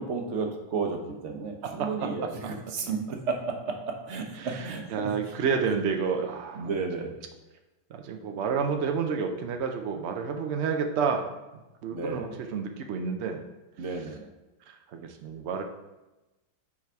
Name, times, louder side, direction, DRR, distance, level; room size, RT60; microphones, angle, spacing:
voice 1, 0.0-5.3 6.6-7.1 11.9-12.3 13.8-14.3, right 4 dB, 50° right, 4 dB, 0.9 m, -33 dB
voice 2, 1.6-2.3 2.8-2.9 4.4-6.7 7.9-11.3 11.8-13.4 14.7-15.6, right 6 dB, 90° right, 4 dB, 0.6 m, -30 dB
5.9 x 4.7 x 4.4 m, 1.0 s
omnidirectional pair, 1.9 m